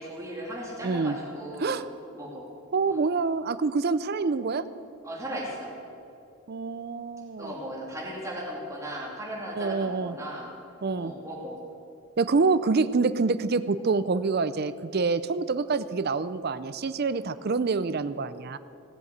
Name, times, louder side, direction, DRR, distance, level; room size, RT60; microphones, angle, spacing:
voice 1, 0.0-1.9 2.1-2.4 2.8-3.0 5.0-5.7 7.4-10.5 11.0-11.6, equal, 15° right, -4 dB, 2.8 m, -37 dB
voice 2, 0.8-1.1 1.6-1.9 2.7-4.6 6.5-7.5 9.6-10.2 10.8-11.1 12.2-18.6, right 4 dB, 45° right, 14 dB, 0.5 m, -26 dB
17.5 x 7.8 x 8.0 m, 2.7 s
head